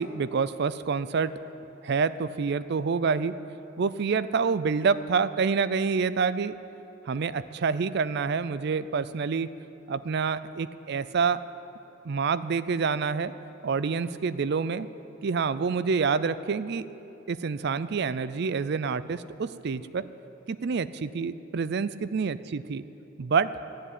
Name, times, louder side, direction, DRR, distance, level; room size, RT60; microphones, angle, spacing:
voice 1, 0.0-1.3 1.8-3.3 3.8-6.6 7.1-9.5 9.9-11.4 12.0-13.3 13.6-14.9 15.2-16.9 17.3-20.1 20.5-22.8 23.2-23.5, right 5 dB, 55° right, 14 dB, 0.4 m, -27 dB
14.0 x 7.6 x 9.7 m, 3.0 s
head